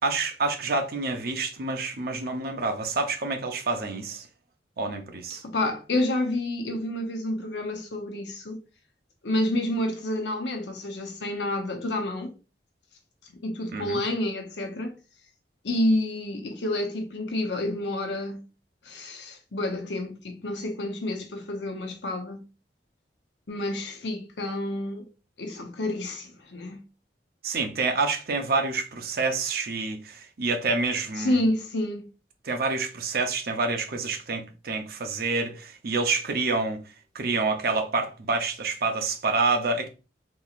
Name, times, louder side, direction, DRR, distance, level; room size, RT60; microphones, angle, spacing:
voice 1, 0.0-4.3 4.8-5.4 13.7-14.0 27.4-31.4 32.4-36.8 37.1-39.9, right 3 dB, 60° right, 0.7 m, -27 dB
voice 2, 5.3-8.6 9.2-12.3 13.4-14.9 15.6-18.4 18.8-22.4 23.5-25.1 25.4-26.8 31.2-32.1, left 1 dB, 85° left, 0.8 m, -29 dB
3.8 x 2.9 x 2.4 m
head